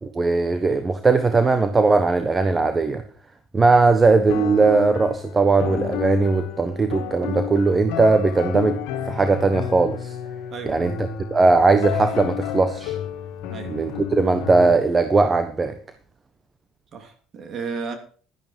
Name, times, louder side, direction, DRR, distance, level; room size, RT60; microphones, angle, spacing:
voice 1, 0.0-3.0 3.5-10.2 10.6-13.0 13.7-15.8, right 3 dB, 25° right, 1.3 m, -19 dB
sound 1, 4.3-14.7, left 9 dB, 80° left, 1.8 m, -31 dB
voice 2, 10.5-11.0 13.5-13.8 16.9-18.0, right 5 dB, 50° right, 3.1 m, -33 dB
12.5 x 10.5 x 4.6 m
supercardioid pair, 85°, 0 cm